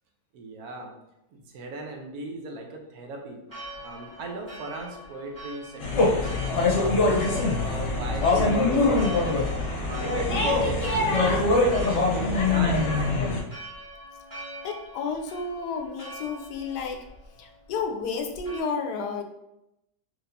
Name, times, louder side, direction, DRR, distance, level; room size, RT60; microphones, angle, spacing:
voice 1, 0.3-0.9 1.3-3.4 3.8-6.3 6.7-7.2 7.6-9.4 9.8-13.1, right 2 dB, 70° right, 2 dB, 1.2 m, -37 dB
Church bell, 3.5-18.6, right 1 dB, 15° right, 1.2 m, -44 dB
sound 1, 5.8-13.4, left 3 dB, 55° left, 1.0 m, -23 dB
voice 2, 14.6-17.0 17.4-19.2, left 5 dB, 80° left, 4 dB, 1.1 m, -31 dB
4.5 x 3.1 x 2.6 m, 0.87 s
omnidirectional pair, 1.7 m